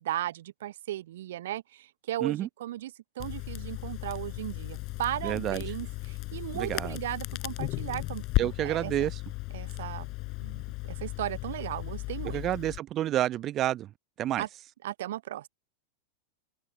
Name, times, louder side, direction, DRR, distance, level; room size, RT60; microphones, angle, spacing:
voice 1, 0.0-9.1 9.5-12.4 14.4-14.5 14.8-15.5, right 13 dB, 55° right, 0.8 m, -36 dB
Crackle, 3.2-12.8, left 21 dB, 40° left, 5.3 m, -35 dB
voice 2, 5.2-5.6 6.5-7.0 8.4-9.2 12.2-13.9 14.2-14.4, right 13 dB, 30° right, 1.0 m, -29 dB
figure-of-eight pair, 90°, 0 cm